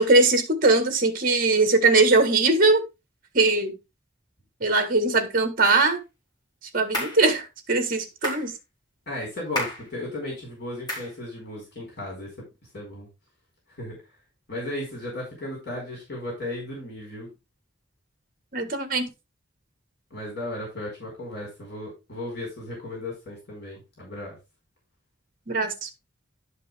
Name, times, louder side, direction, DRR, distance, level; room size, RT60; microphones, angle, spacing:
voice 1, 0.0-2.8 3.3-3.8 4.6-6.0 6.7-8.5 18.5-19.1 25.5-25.9, right 3 dB, 45° right, 7 dB, 1.7 m, -21 dB
sound 1, 5.6-5.9 6.9-7.2 8.2-8.5 9.5-9.9 10.9-11.1, left 1 dB, 20° left, 4.2 m, -31 dB
voice 2, 9.1-12.3 12.7-13.1 13.8-14.0 14.5-17.3 20.1-24.3, left 1 dB, 60° left, -2 dB, 4.8 m, -35 dB
11.0 x 5.3 x 3.5 m, 0.25 s
head